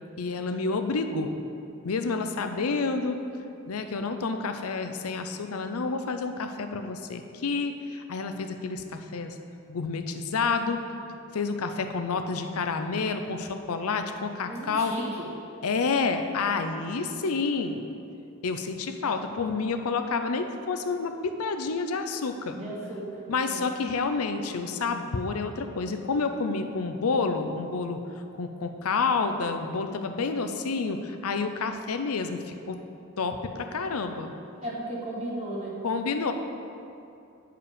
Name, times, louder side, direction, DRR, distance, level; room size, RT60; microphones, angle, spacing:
voice 1, 0.2-1.4 1.8-3.2 3.7-9.4 9.7-10.8 11.3-14.9 15.6-17.8 18.4-22.6 23.3-28.0 28.3-32.8 33.2-34.3 35.8-36.3, left 4 dB, 90° left, 7 dB, 0.6 m, -29 dB
voice 2, 14.5-15.2 22.5-23.7 34.6-35.8, right 1 dB, 30° right, -5 dB, 1.6 m, -35 dB
10.0 x 4.8 x 5.0 m, 2.7 s
head